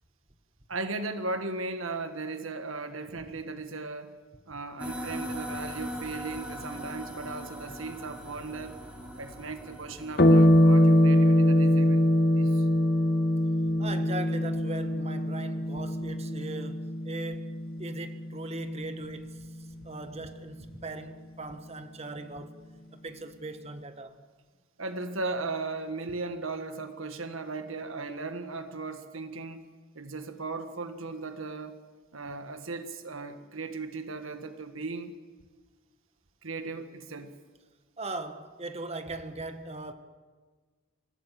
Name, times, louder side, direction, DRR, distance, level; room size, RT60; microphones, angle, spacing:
voice 1, 0.7-4.1 4.5-8.8 9.2-12.1 12.4-12.6 24.8-29.7 29.9-31.8 32.1-35.1 36.4-37.3, right 3 dB, 85° right, 1.6 m, -37 dB
sound 1, 4.8-12.4, equal, 5° right, 3.6 m, -41 dB
sound 2, 10.2-19.0, left 1 dB, 50° left, 1.7 m, -23 dB
voice 2, 13.8-19.5 19.8-22.5 22.9-24.2 38.0-39.9, right 2 dB, 30° right, 1.5 m, -39 dB
25.0 x 16.0 x 7.6 m
head